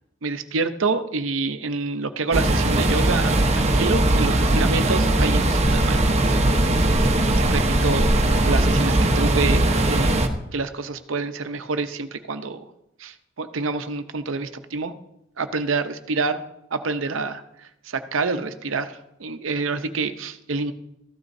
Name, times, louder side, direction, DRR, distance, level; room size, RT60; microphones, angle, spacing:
voice 1, 0.2-6.4 7.4-10.2 10.5-12.6 13.0-14.9 15.4-16.5 16.7-20.7, right 4 dB, 75° right, 9 dB, 0.7 m, -27 dB
sound 1, 2.3-10.3, right 1 dB, 35° right, 0.9 m, -19 dB
14.5 x 12.0 x 2.7 m, 0.83 s
head